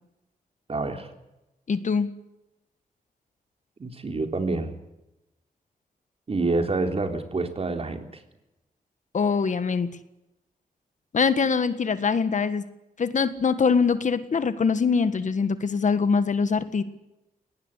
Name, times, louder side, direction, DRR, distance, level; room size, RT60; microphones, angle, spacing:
voice 1, 0.7-1.1 3.8-4.8 6.3-8.2, right 3 dB, 40° right, 5 dB, 3.5 m, -27 dB
voice 2, 1.7-2.1 9.1-9.9 11.1-12.6 13.0-16.8, left 5 dB, 55° left, 12 dB, 1.6 m, -23 dB
21.0 x 18.5 x 9.9 m, 0.93 s
wide cardioid pair, 110°, 15 cm